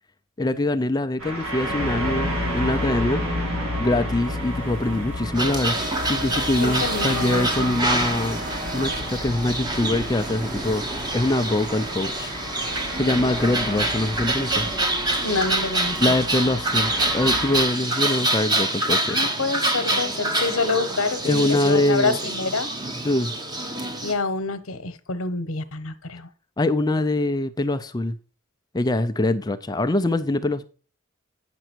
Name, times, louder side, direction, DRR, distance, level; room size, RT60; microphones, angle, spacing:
voice 1, 0.4-3.2 3.8-8.4 8.7-12.3 13.0-14.8 16.0-19.2 21.2-22.2 23.0-23.3 26.6-28.2 28.7-30.6, left 1 dB, 20° left, 0.4 m, -23 dB
sound 1, 1.2-17.6, equal, 80° right, 3.2 m, -31 dB
sound 2, 4.4-16.6, right 2 dB, 35° right, 1.6 m, -38 dB
sound 3, 5.3-24.1, right 1 dB, 20° right, 1.0 m, -26 dB
voice 2, 6.6-7.8 15.2-16.0 19.1-22.7 24.0-26.3, left 3 dB, 80° left, 1.0 m, -27 dB
9.0 x 6.1 x 4.5 m
head